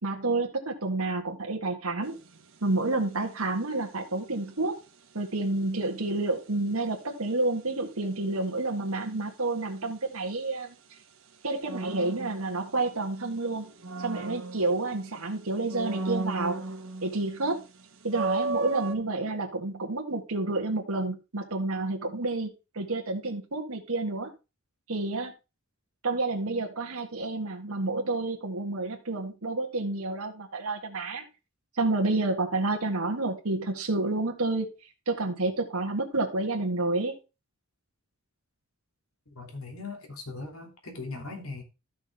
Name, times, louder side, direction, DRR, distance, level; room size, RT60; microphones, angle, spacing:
voice 1, 0.0-2.2 2.6-4.8 5.1-10.7 11.4-13.7 14.0-16.6 17.0-17.6 18.0-22.5 22.7-24.3 24.9-25.3 26.0-31.3 31.8-34.7 35.1-37.2, right 2 dB, 85° right, 1.9 m, -29 dB
sound 1, 2.0-2.4 11.7-13.1 13.5-15.2 15.7-17.2 17.6-17.7 18.1-18.9, right 3 dB, 65° right, 1.3 m, -34 dB
voice 2, 39.3-41.6, left 3 dB, 75° left, 3.2 m, -39 dB
13.0 x 6.3 x 3.7 m
head